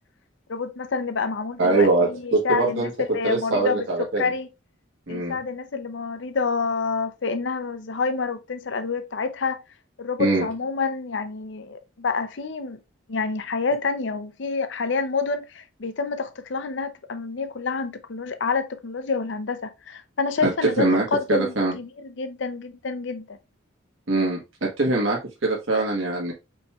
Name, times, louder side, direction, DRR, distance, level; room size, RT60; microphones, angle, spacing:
voice 1, 0.5-3.9 4.2-4.5 5.1-9.6 10.0-12.8 13.1-23.4, left 4 dB, 60° left, 0.6 m, -28 dB
voice 2, 1.6-2.9 3.2-4.2 5.1-5.4 10.2-10.5 20.4-21.7 24.1-26.3, right 2 dB, 75° right, 1.3 m, -23 dB
5.3 x 4.3 x 2.4 m
head